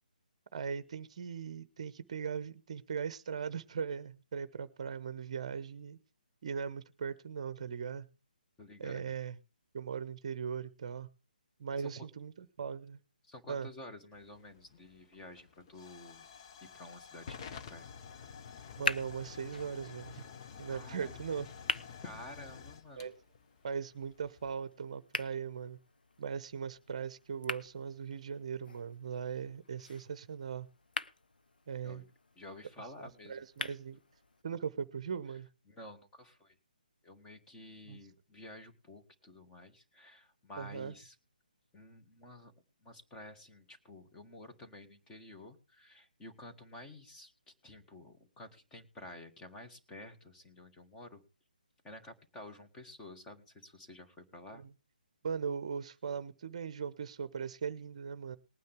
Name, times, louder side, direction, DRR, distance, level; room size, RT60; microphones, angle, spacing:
voice 1, 0.5-6.0 6.4-8.1 8.8-9.4 9.7-11.1 11.6-13.0 13.5-13.7 18.8-20.2 20.6-21.5 23.0-23.1 23.6-25.8 26.2-30.7 31.7-32.0 33.0-34.0 34.4-35.5 37.9-38.0 40.6-40.9 54.5-54.7 55.2-58.4, right 6 dB, 45° right, 0.8 m, -39 dB
voice 2, 8.6-9.1 11.8-12.1 13.2-16.2 16.6-17.9 20.6-21.2 22.0-23.1 31.8-32.0 32.3-33.4 35.7-36.5 37.0-41.1 41.7-42.5 42.8-51.2 51.8-54.6, left 1 dB, 10° left, 1.6 m, -51 dB
Hiss / Fire / Tick, 14.1-24.5, left 6 dB, 35° left, 1.0 m, -50 dB
sound 1, 18.4-34.4, left 3 dB, 70° left, 0.9 m, -44 dB
19.5 x 9.4 x 3.5 m
figure-of-eight pair, 140°, 5 cm